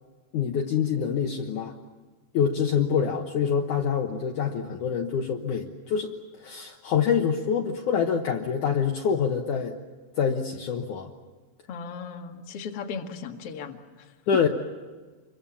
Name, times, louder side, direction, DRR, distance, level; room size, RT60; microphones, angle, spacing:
voice 1, 0.3-1.7 2.3-6.1 6.4-9.8 10.2-11.1 14.3-14.5, left 7 dB, 65° left, 2 dB, 2.4 m, -26 dB
voice 2, 11.7-14.1, left 5 dB, 45° left, 3 dB, 2.3 m, -37 dB
27.5 x 23.5 x 7.1 m, 1.4 s
omnidirectional pair, 4.4 m